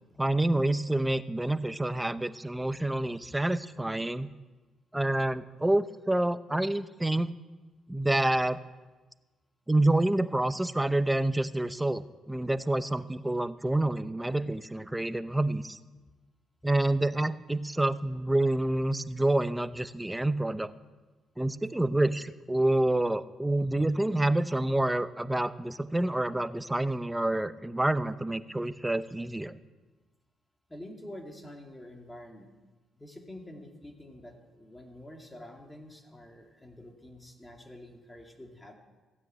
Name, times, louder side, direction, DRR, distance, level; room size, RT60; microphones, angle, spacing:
voice 1, 0.2-4.3 4.9-7.3 7.9-8.6 9.7-15.8 16.6-20.7 21.4-29.6, right 1 dB, 10° right, 13 dB, 0.7 m, -28 dB
voice 2, 30.7-32.5 33.0-38.7, left 1 dB, 10° left, 3 dB, 2.6 m, -47 dB
15.5 x 9.3 x 8.9 m, 1.2 s
cardioid pair, 90°, 0 cm